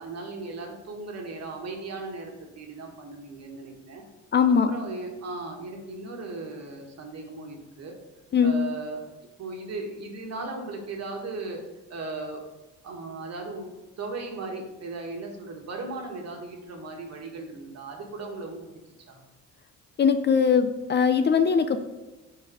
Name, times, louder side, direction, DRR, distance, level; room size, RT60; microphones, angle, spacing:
voice 1, 0.0-4.0 4.7-7.9 8.4-9.0 9.4-11.6 11.9-12.4 12.8-13.7 14.0-18.8 19.1-19.2, right 3 dB, 55° right, 1 dB, 1.4 m, -37 dB
voice 2, 4.3-4.7 8.3-8.6 20.0-21.8, left 6 dB, 35° left, 9 dB, 0.4 m, -21 dB
5.0 x 4.1 x 4.8 m, 1.1 s
cardioid pair, 90°, 30 cm